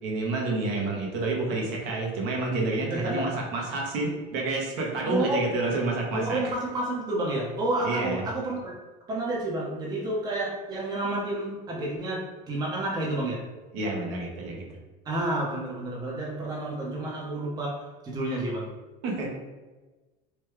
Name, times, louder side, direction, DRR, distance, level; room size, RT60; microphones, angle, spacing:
voice 1, 0.0-6.4 7.8-8.3 13.7-14.7 19.0-19.3, right 2 dB, 65° right, -1 dB, 0.9 m, -29 dB
voice 2, 2.9-3.4 5.0-5.5 6.1-8.7 9.1-13.4 15.1-18.7, right 1 dB, 20° right, -3 dB, 0.6 m, -30 dB
3.0 x 2.2 x 3.2 m, 1.2 s
cardioid pair, 140°, 21 cm